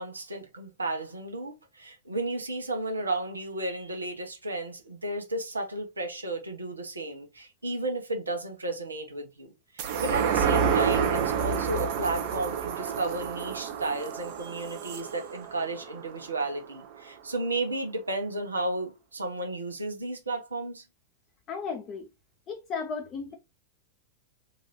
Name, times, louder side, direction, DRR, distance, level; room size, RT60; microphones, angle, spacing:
voice 1, 0.0-20.8, right 2 dB, 80° right, 0.8 m, -33 dB
sound 1, 9.8-16.6 17.0-17.1, right 7 dB, 45° right, 0.6 m, -29 dB
voice 2, 21.5-22.1 22.5-23.3, left 5 dB, 30° left, 0.7 m, -34 dB
3.9 x 2.6 x 3.0 m
figure-of-eight pair, 90°, 0 cm